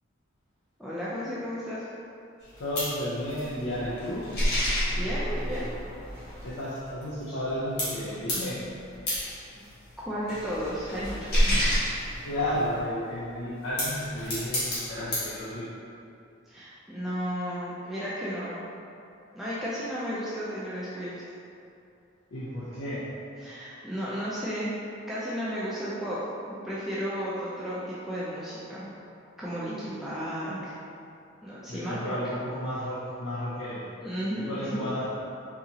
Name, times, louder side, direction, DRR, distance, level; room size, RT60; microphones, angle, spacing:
voice 1, 0.8-1.9 4.9-5.7 9.6-9.7 10.0-11.7 16.5-18.7 19.3-21.2 23.4-28.9 29.4-30.7 31.4-32.2 34.0-34.9, equal, ahead, -10 dB, 0.4 m, -33 dB
sound 1, 2.4-7.5 7.8-12.8 13.5-15.3, equal, 50° left, 1.3 m, -30 dB
voice 2, 2.6-4.3 6.4-8.6 12.2-15.7 22.3-23.1 31.7-33.9 34.5-35.1, left 1 dB, 75° left, -10 dB, 0.6 m, -32 dB
3.8 x 2.8 x 2.8 m, 2.6 s
head